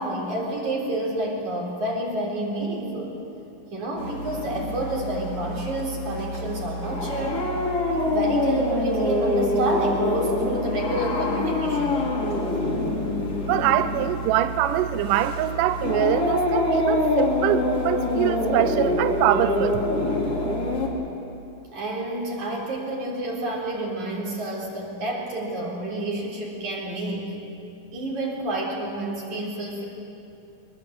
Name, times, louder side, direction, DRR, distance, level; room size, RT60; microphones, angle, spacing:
voice 1, 0.0-3.1 3.7-7.5 7.9-12.1 21.7-27.4 27.9-29.8, right 1 dB, 50° right, -3 dB, 5.1 m, -29 dB
sound 1, 4.0-20.9, left 2 dB, 40° left, 3.6 m, -26 dB
voice 2, 13.5-19.8, right 12 dB, 80° right, 11 dB, 1.9 m, -24 dB
24.0 x 21.5 x 7.8 m, 2.7 s
omnidirectional pair, 4.4 m